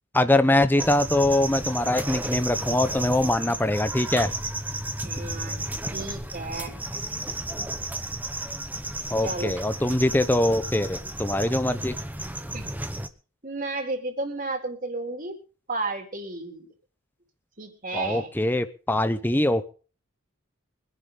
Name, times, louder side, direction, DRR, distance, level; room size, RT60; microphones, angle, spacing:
voice 1, 0.1-4.3 9.1-11.9 17.9-19.7, left 1 dB, 10° left, 10 dB, 0.8 m, -23 dB
sound 1, 0.8-13.1, right 1 dB, 10° right, 1.0 m, -33 dB
voice 2, 5.0-5.6 5.9-6.7 9.2-9.5 12.5-12.7 13.4-15.4 15.7-16.7 17.6-18.3, right 2 dB, 40° right, 4 dB, 3.5 m, -32 dB
24.0 x 11.0 x 3.8 m, 0.38 s
head